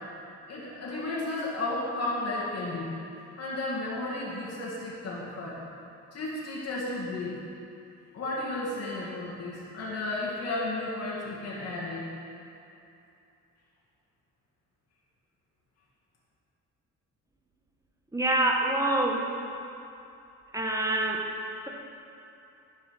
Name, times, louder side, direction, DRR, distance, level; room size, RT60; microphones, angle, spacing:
voice 1, 0.5-2.9 3.4-5.6 6.1-7.4 8.1-12.1, left 2 dB, 55° left, -6 dB, 2.0 m, -33 dB
voice 2, 18.1-19.3 20.5-21.3, right 2 dB, 10° right, 0 dB, 1.1 m, -26 dB
10.5 x 4.7 x 6.2 m, 2.8 s
cardioid pair, 90°, 30 cm